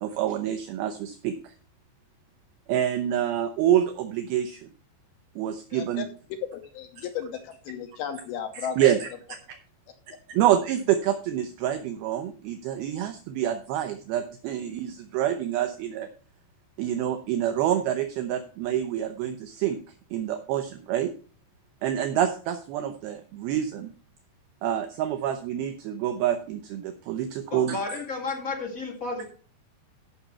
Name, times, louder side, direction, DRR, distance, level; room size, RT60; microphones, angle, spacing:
voice 1, 0.0-1.3 2.7-4.6 5.4-6.0 8.8-9.1 10.3-16.1 16.8-19.8 20.1-21.1 21.8-23.9 24.6-27.8, right 11 dB, 75° right, 7 dB, 2.5 m, -27 dB
voice 2, 5.7-6.0 6.5-8.9, left 8 dB, 75° left, 6 dB, 2.6 m, -35 dB
voice 3, 27.5-29.3, left 3 dB, 25° left, 0 dB, 2.3 m, -32 dB
14.0 x 5.9 x 4.4 m, 0.39 s
omnidirectional pair, 4.8 m